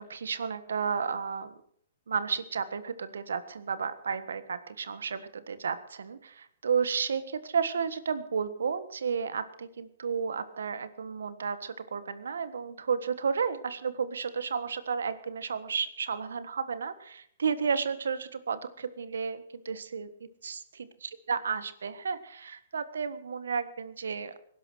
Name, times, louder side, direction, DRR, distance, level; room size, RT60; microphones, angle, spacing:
voice 1, 0.0-1.5 2.1-20.1 20.4-20.6 21.3-24.4, right 6 dB, 80° right, 14 dB, 1.4 m, -32 dB
19.0 x 11.0 x 6.2 m, 0.64 s
hypercardioid pair, 135°, 0 cm